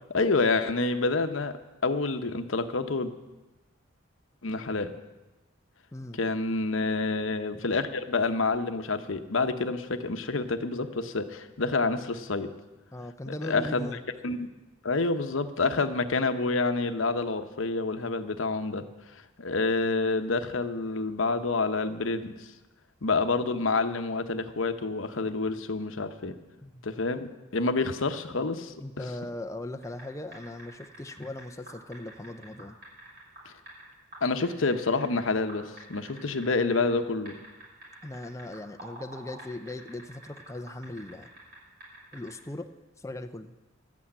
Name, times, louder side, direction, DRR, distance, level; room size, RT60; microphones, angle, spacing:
voice 1, 0.1-3.1 4.4-4.9 6.2-12.5 13.3-13.9 14.2-14.5 14.8-18.9 19.4-22.5 23.0-26.4 26.8-29.0 34.2-37.4, left 3 dB, 70° left, 9 dB, 0.9 m, -28 dB
voice 2, 12.9-14.0 26.6-26.8 28.8-32.8 38.0-41.3 42.1-42.7 43.0-43.5, left 1 dB, 15° left, 7 dB, 0.6 m, -39 dB
sound 1, 29.8-30.0 30.3-33.8 34.1-35.2 35.5-37.0 37.3-41.6 41.8-42.3, right 2 dB, 50° right, 5.9 m, -47 dB
12.5 x 8.5 x 8.6 m, 1.1 s
head